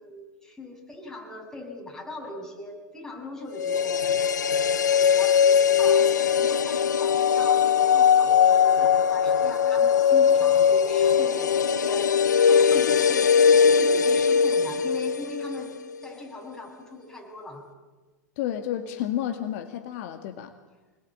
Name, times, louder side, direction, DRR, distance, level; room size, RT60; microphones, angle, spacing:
voice 1, 0.0-17.7, left 2 dB, 5° left, 0 dB, 7.2 m, -39 dB
sound 1, 3.5-15.7 15.9-16.0, left 7 dB, 80° left, 0.9 m, -20 dB
voice 2, 18.4-20.5, left 11 dB, 55° left, 7 dB, 2.1 m, -31 dB
26.0 x 21.5 x 8.8 m, 1.3 s
hypercardioid pair, 100°, 9 cm